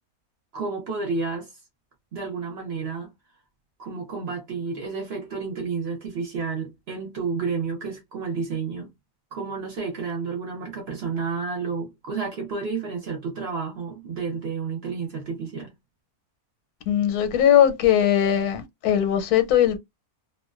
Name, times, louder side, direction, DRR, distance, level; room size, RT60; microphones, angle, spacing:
voice 1, 0.5-1.5 2.1-3.1 3.8-8.9 9.3-15.7, right 4 dB, 55° right, 0.8 m, -31 dB
voice 2, 16.9-19.8, left 10 dB, 85° left, 1.1 m, -20 dB
2.4 x 2.2 x 2.3 m
omnidirectional pair, 1.6 m